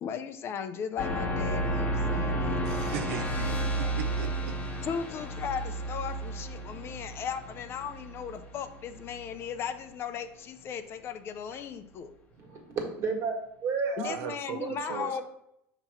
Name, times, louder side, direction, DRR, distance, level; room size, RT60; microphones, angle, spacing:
voice 1, 0.0-2.6 4.8-12.1 14.0-15.2, left 7 dB, 40° left, 9 dB, 0.5 m, -36 dB
sound 1, 1.0-9.5, right 1 dB, 20° left, 0.9 m, -32 dB
voice 2, 2.6-4.6 14.1-15.2, right 9 dB, 85° right, 9 dB, 0.4 m, -39 dB
voice 3, 12.4-13.4 13.6-14.1 14.5-15.2, right 5 dB, 45° right, 2 dB, 1.6 m, -32 dB
5.8 x 2.9 x 5.5 m, 0.78 s
supercardioid pair, 130°, 7 cm